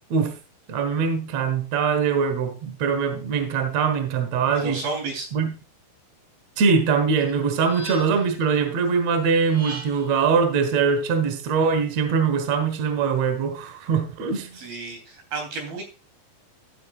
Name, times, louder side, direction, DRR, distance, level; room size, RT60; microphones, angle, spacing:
voice 1, 0.7-4.8 5.3-5.5 6.6-14.6, right 5 dB, 80° right, 1.5 m, -22 dB
voice 2, 4.5-5.3 14.5-15.8, right 3 dB, 55° right, 4.8 m, -32 dB
sound 1, 7.2-8.4 9.3-10.2, right 1 dB, 35° right, 3.2 m, -39 dB
13.5 x 9.3 x 2.4 m
omnidirectional pair, 5.4 m